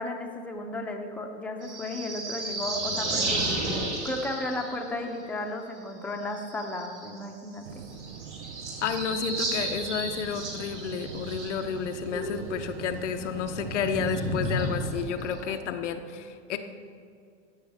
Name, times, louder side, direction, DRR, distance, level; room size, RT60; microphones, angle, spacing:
voice 1, 0.0-7.7, left 2 dB, 5° left, 2 dB, 0.6 m, -34 dB
sound 1, 1.6-5.0 6.1-7.2 7.5-7.6 7.8-11.7 12.0-15.6, right 1 dB, 90° right, 2.7 m, -33 dB
sound 2, 7.6-15.1, right 8 dB, 65° right, 0.7 m, -42 dB
voice 2, 8.8-16.6, left 7 dB, 85° left, 6 dB, 0.8 m, -31 dB
15.0 x 6.2 x 3.5 m, 2.3 s
hypercardioid pair, 125°, 35 cm